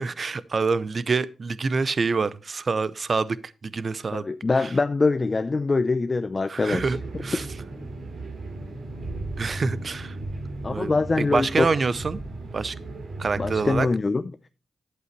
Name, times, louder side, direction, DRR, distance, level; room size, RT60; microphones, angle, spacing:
voice 1, 0.0-3.4 3.6-4.3 4.6-4.7 6.5-7.5 9.4-10.2 10.7-10.9 11.2-12.2 12.5-12.7 13.2-13.9, right 4 dB, 50° right, 0.6 m, -26 dB
voice 2, 4.1-7.0 10.6-11.7 13.4-14.2, left 3 dB, 35° left, 0.6 m, -24 dB
sound 1, 6.8-13.8, right 2 dB, 65° right, 3.5 m, -36 dB
11.5 x 7.9 x 3.1 m
cardioid pair, 70°, 0 cm